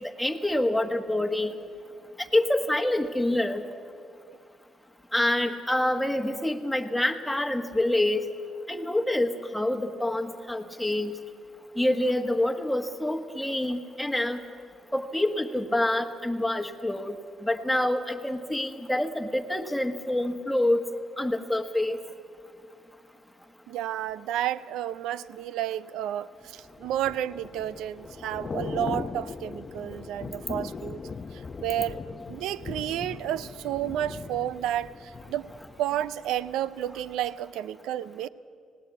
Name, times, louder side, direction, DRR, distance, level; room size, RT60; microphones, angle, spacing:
voice 1, 0.2-1.5 2.3-3.6 5.1-8.2 8.7-11.1 11.8-14.4 14.9-17.2 17.4-20.8 21.2-22.0, left 1 dB, 5° left, 6 dB, 1.5 m, -26 dB
voice 2, 23.7-31.0 31.3-32.0 32.3-35.5 35.8-38.3, right 11 dB, 85° right, 18 dB, 0.5 m, -31 dB
Thunder / Rain, 26.6-36.5 36.9-37.1, left 4 dB, 40° left, 0.7 m, -39 dB
19.0 x 17.0 x 8.2 m, 2.4 s
supercardioid pair, 75°, 0 cm